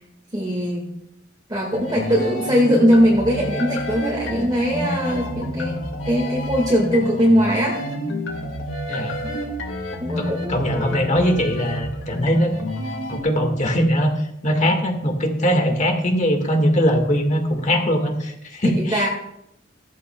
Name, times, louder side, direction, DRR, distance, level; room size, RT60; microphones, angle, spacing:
voice 1, 0.3-0.9 1.5-5.8 6.0-7.8 10.0-10.6 18.6-19.1, equal, 20° right, -3 dB, 1.8 m, -20 dB
sound 1, 1.7-13.2, left 1 dB, 80° left, 2.0 m, -29 dB
voice 2, 10.2-12.7 13.1-14.1 14.4-19.1, equal, 40° left, 4 dB, 1.7 m, -21 dB
14.5 x 14.0 x 2.3 m, 0.80 s
head